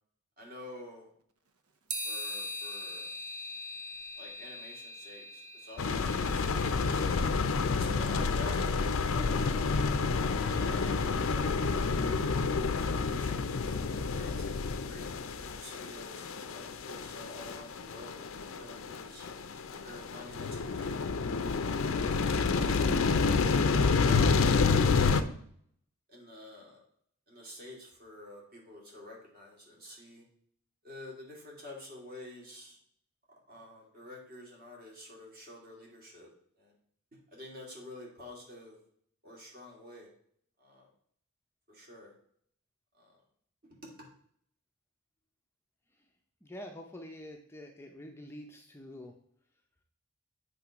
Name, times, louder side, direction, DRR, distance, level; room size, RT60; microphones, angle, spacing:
voice 1, 0.4-1.1 2.0-3.1 4.2-7.3 7.8-8.7 9.0-9.5 9.8-12.3 12.8-19.3 19.7-21.0 21.9-23.4 24.0-25.4 26.1-26.8 27.3-30.2 30.8-32.8 33.5-36.3 36.6-36.7 37.3-38.8 39.2-40.1 40.6-40.9 41.7-42.1 43.0-43.1, left 1 dB, 40° right, -2 dB, 2.5 m, -49 dB
sound 1, 1.9-7.2, left 1 dB, 85° right, 0.8 m, -41 dB
sound 2, 5.8-25.2, left 4 dB, 65° left, 0.5 m, -29 dB
voice 2, 46.4-49.1, equal, 10° left, 2 dB, 0.6 m, -46 dB
7.8 x 3.3 x 5.8 m, 0.64 s
head